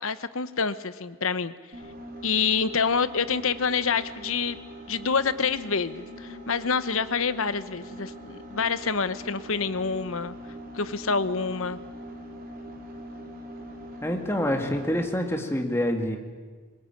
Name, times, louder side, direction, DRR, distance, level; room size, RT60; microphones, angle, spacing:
voice 1, 0.0-1.5 2.2-4.6 4.9-10.3 10.7-11.8, left 5 dB, 70° left, 14 dB, 1.1 m, -27 dB
sound 1, 1.7-15.2, equal, 40° right, 3.6 m, -42 dB
voice 2, 14.0-16.2, left 1 dB, 10° left, 4 dB, 2.2 m, -26 dB
23.0 x 21.0 x 9.1 m, 1.5 s
head